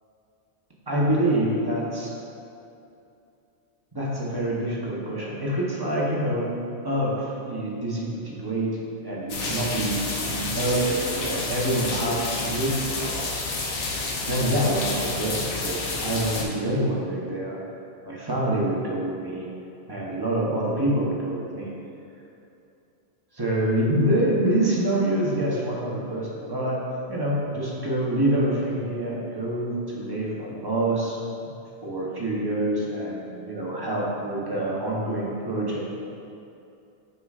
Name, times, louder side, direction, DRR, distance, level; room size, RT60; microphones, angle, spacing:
voice 1, 0.9-2.1 3.9-6.5 6.8-13.5 14.2-17.6 18.0-19.5 19.9-21.7 23.3-26.8 27.1-31.2 31.8-35.9, right 1 dB, 20° right, -5 dB, 0.9 m, -26 dB
sound 1, 9.3-16.4, left 3 dB, 85° left, 1.2 m, -30 dB
7.6 x 5.4 x 2.4 m, 2.7 s
omnidirectional pair, 1.4 m